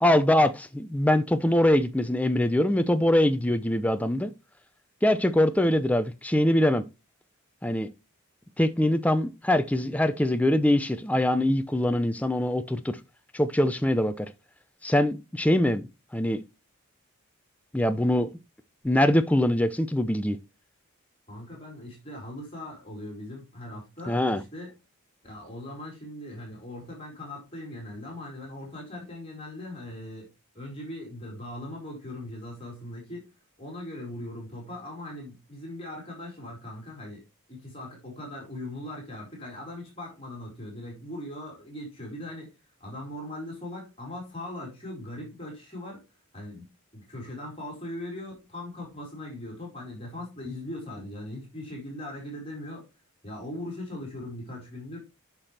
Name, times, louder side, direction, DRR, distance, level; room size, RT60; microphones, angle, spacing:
voice 1, 0.0-4.3 5.0-6.8 7.6-7.9 8.6-13.0 13.3-14.3 14.8-15.8 16.1-16.4 17.7-18.3 18.8-20.4 24.1-24.4, left 1 dB, 5° left, 0.5 m, -23 dB
voice 2, 21.3-24.7 25.2-30.3 30.5-33.3 33.6-37.2 37.5-42.5 42.8-46.0 46.3-46.7 46.9-52.8 53.2-55.0, left 1 dB, 25° left, 4.5 m, -39 dB
10.0 x 5.8 x 3.3 m
head